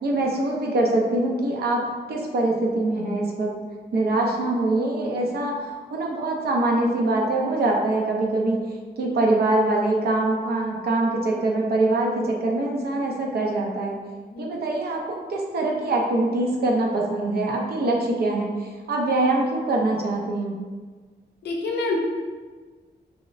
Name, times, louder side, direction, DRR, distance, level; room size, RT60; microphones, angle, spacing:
voice 1, 0.0-1.8 2.1-3.5 3.9-8.6 9.0-14.0 14.4-20.6, right 2 dB, 70° right, -1 dB, 0.5 m, -23 dB
voice 2, 21.4-22.0, left 3 dB, 80° left, 0 dB, 0.5 m, -27 dB
4.8 x 2.0 x 2.4 m, 1.4 s
wide cardioid pair, 140°, 17 cm